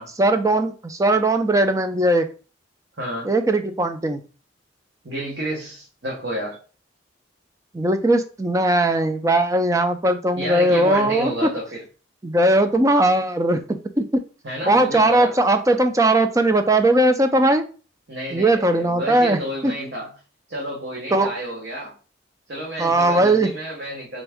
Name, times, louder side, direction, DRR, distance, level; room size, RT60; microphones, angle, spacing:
voice 1, 0.2-2.3 3.2-4.2 7.7-11.5 12.2-14.1 14.7-17.6 18.3-19.7 21.1-21.3 22.8-23.5, right 1 dB, 15° right, 8 dB, 0.4 m, -19 dB
voice 2, 3.0-3.3 5.0-6.6 10.4-11.8 14.4-15.4 18.1-20.1 20.5-21.9 22.5-24.2, equal, 60° right, -2 dB, 1.0 m, -30 dB
4.0 x 3.5 x 3.5 m, 0.37 s
head